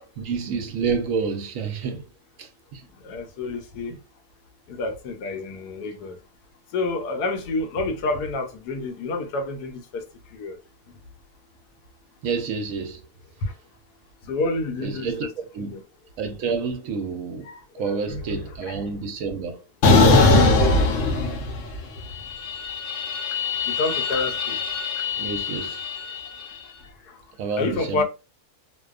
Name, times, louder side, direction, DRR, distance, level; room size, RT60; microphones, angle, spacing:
voice 1, 0.0-2.1 2.4-2.8 12.2-13.0 14.8-15.3 15.5-15.8 16.2-19.6 25.2-25.8 27.4-28.0, right 5 dB, 65° right, 0.8 m, -29 dB
voice 2, 3.0-4.0 4.7-6.2 6.7-10.0 10.3-10.6 13.4-13.5 14.3-15.3 15.7-15.8 17.4-18.5 23.7-24.6 27.5-28.0, left 3 dB, 80° left, 1.1 m, -28 dB
sound 1, 19.8-21.8 22.1-26.4, left 3 dB, 60° left, 0.9 m, -21 dB
2.6 x 2.2 x 2.3 m
omnidirectional pair, 1.7 m